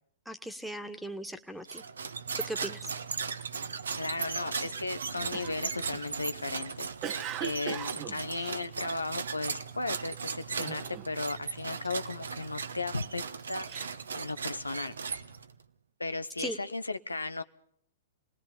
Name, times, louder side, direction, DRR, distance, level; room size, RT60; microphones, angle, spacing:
voice 1, 0.3-1.8 2.4-2.9 16.4-16.6, right 1 dB, ahead, 8 dB, 1.9 m, -38 dB
sound 1, 1.7-15.6, right 5 dB, 70° right, 1.2 m, -37 dB
voice 2, 4.0-6.9 7.4-14.9 16.0-17.4, left 3 dB, 85° left, 12 dB, 0.9 m, -36 dB
Cough, 5.3-9.4 9.9-10.2 10.6-11.3 11.6-12.7 13.3-14.8, right 10 dB, 30° right, 1.3 m, -41 dB
28.5 x 20.0 x 5.3 m, 0.67 s
figure-of-eight pair, 110°, 0 cm